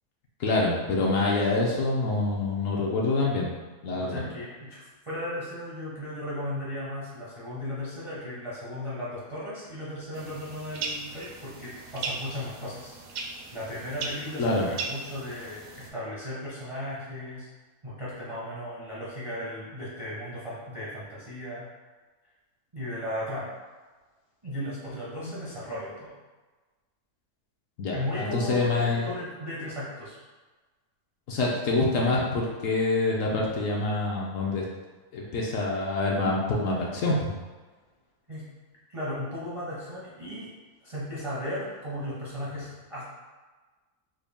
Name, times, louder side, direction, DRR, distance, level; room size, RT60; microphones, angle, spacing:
voice 1, 0.4-3.5 3.8-4.2 14.4-14.7 25.2-25.4 27.8-29.1 31.3-34.6 35.1-37.3, left 2 dB, 65° left, -3 dB, 0.9 m, -26 dB
voice 2, 3.9-12.9 13.5-17.5 17.8-21.7 22.7-23.6 24.4-26.2 27.9-30.2 38.3-38.5 38.9-40.5 40.8-43.0, left 1 dB, 35° right, -8 dB, 0.5 m, -36 dB
sound 1, 10.1-15.9, right 4 dB, 70° right, 0.9 m, -38 dB
3.8 x 2.2 x 3.4 m, 1.3 s
omnidirectional pair, 1.6 m